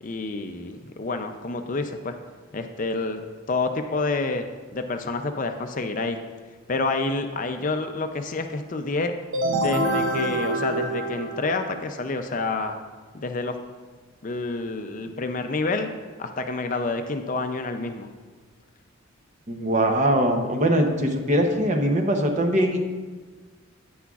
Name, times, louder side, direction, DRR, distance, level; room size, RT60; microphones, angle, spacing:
voice 1, 0.0-2.1 2.5-3.2 3.5-4.5 4.7-6.2 6.7-9.1 9.5-12.8 13.1-13.6 14.2-15.9 16.2-18.1, left 3 dB, 35° left, 6 dB, 0.4 m, -28 dB
sound 1, 9.3-12.0, right 1 dB, 65° right, 0.6 m, -26 dB
voice 2, 19.5-22.8, right 1 dB, 35° right, 4 dB, 0.7 m, -22 dB
9.8 x 9.3 x 2.4 m, 1.4 s
head